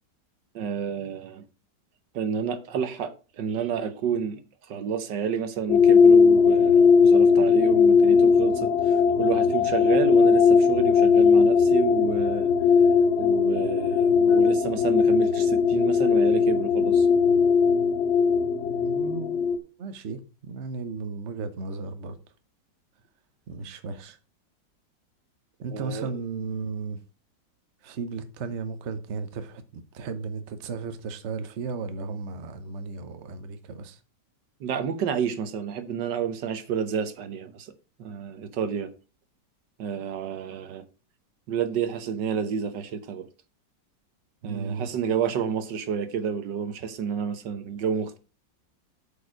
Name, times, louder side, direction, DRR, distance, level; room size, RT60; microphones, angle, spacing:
voice 1, 0.5-1.4 2.1-4.4 4.7-12.5 13.2-17.1 25.7-26.1 34.6-37.7 38.0-38.9 39.8-40.8 41.5-43.3 44.4-48.2, right 7 dB, 75° right, 1.6 m, -30 dB
sound 1, 5.7-19.6, left 5 dB, 50° left, 0.8 m, -19 dB
voice 2, 18.6-19.5 19.8-22.2 23.5-24.2 25.6-27.0 27.8-34.0 44.4-44.9, right 4 dB, 45° right, 1.2 m, -35 dB
8.4 x 5.4 x 6.3 m
omnidirectional pair, 2.0 m